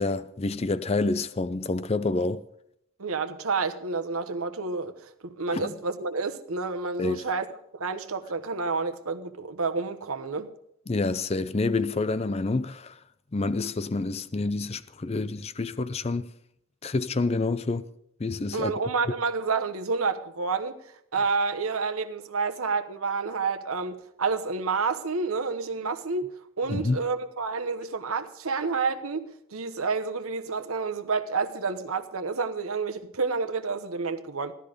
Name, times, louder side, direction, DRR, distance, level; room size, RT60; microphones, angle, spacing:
voice 1, 0.0-2.4 5.5-5.7 7.0-7.2 10.9-12.9 13.3-16.3 16.8-17.9 18.2-18.7 26.7-27.0, left 3 dB, 30° left, 0.4 m, -28 dB
voice 2, 3.0-10.5 18.5-20.7 21.1-26.3 26.6-34.5, right 4 dB, 80° right, 1.0 m, -29 dB
15.5 x 12.5 x 5.0 m
head